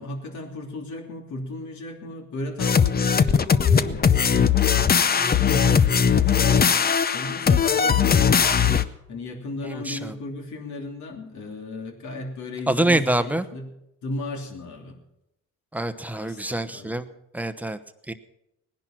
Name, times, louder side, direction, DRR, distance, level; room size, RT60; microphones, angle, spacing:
voice 1, 0.0-8.8 9.1-13.6 14.0-15.0 16.1-17.0, left 2 dB, 70° left, 2 dB, 3.1 m, -35 dB
sound 1, 2.6-8.9, left 7 dB, 30° left, 0.7 m, -19 dB
voice 2, 9.6-10.1 12.7-13.5 15.7-17.1 17.3-17.8 18.1-18.2, right 1 dB, 5° right, 10 dB, 1.0 m, -25 dB
18.5 x 10.5 x 5.9 m, 0.85 s
cardioid pair, 90°, 30 cm